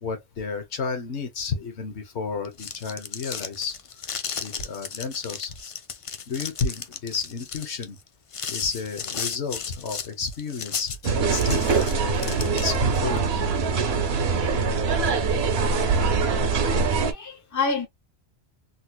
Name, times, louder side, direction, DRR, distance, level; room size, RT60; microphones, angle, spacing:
voice 1, 0.0-3.8 4.4-5.6 6.3-8.0 8.5-13.2, left 5 dB, 80° left, 1.3 m, -32 dB
sound 1, 2.4-13.0, left 6 dB, 55° left, 0.3 m, -35 dB
sound 2, 11.0-17.1, right 4 dB, 70° right, 1.0 m, -23 dB
voice 2, 15.8-16.5 16.9-17.9, left 4 dB, 20° left, 0.7 m, -30 dB
3.9 x 2.8 x 2.2 m
omnidirectional pair, 1.1 m